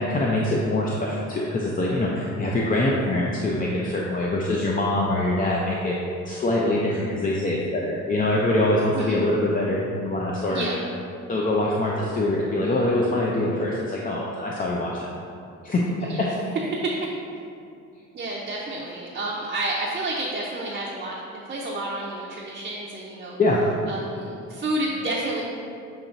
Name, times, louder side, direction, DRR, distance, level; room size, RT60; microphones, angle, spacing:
voice 1, 0.0-6.0 6.3-10.6 11.3-15.1 15.6-16.3 23.4-23.6, left 1 dB, 30° left, -3 dB, 0.5 m, -24 dB
voice 2, 8.9-9.3 10.5-10.8 16.0-16.2 16.8-16.9 18.1-21.2 21.4-23.4 23.9-25.5, right 2 dB, 30° right, -4 dB, 0.6 m, -30 dB
7.0 x 2.9 x 2.6 m, 2.5 s
cardioid pair, 90°, 30 cm